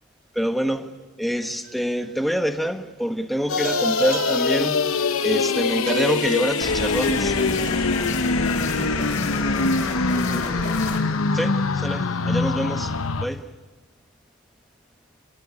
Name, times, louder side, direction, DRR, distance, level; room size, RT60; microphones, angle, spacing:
voice 1, 0.3-7.4 11.3-12.9 13.2-13.5, equal, ahead, 1.4 m, -26 dB
sound 1, 1.6-2.2 3.6-8.1, right 8 dB, 40° right, 1.0 m, -37 dB
sound 2, 3.5-13.3, left 4 dB, 85° left, 1.0 m, -23 dB
sound 3, 6.6-11.0, left 2 dB, 40° left, 5.6 m, -30 dB
voice 2, 8.0-10.8, equal, 20° right, 3.5 m, -41 dB
28.0 x 20.5 x 9.8 m
head